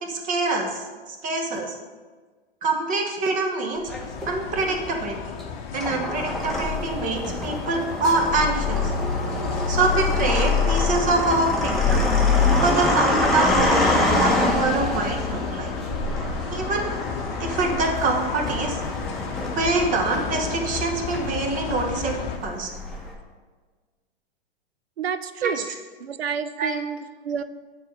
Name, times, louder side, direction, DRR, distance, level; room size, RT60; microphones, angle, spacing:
voice 1, 0.0-0.8 1.2-1.7 2.6-3.9 4.3-5.2 5.7-8.9 9.7-12.1 12.6-15.7 16.5-16.9 17.4-18.8 19.6-22.1 22.4-22.7 25.4-25.5 26.6-26.8, right 3 dB, 25° right, 3 dB, 1.2 m, -25 dB
sound 1, 3.9-22.4, left 6 dB, 35° left, 0.9 m, -33 dB
sound 2, 3.9-4.6 5.3-23.1, left 3 dB, ahead, 1.2 m, -25 dB
voice 2, 25.0-25.7 26.0-27.4, right 7 dB, 80° right, 12 dB, 0.5 m, -29 dB
9.1 x 4.0 x 5.3 m, 1.4 s
figure-of-eight pair, 100°, 31 cm